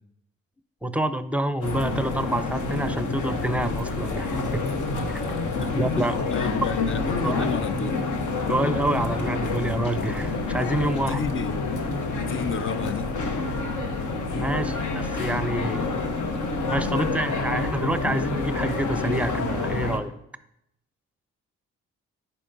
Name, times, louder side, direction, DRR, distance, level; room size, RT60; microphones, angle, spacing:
voice 1, 0.8-4.7 5.1-5.2 5.5-6.1 7.2-7.5 8.5-11.2 14.3-15.9 16.7-20.1, right 1 dB, 5° right, 0.6 m, -27 dB
sound 1, 1.6-20.0, left 3 dB, 60° left, 1.1 m, -28 dB
voice 2, 5.8-8.0 10.9-11.6 12.1-13.1, left 7 dB, 35° left, 0.6 m, -30 dB
10.5 x 4.6 x 2.7 m
hypercardioid pair, 50°, 34 cm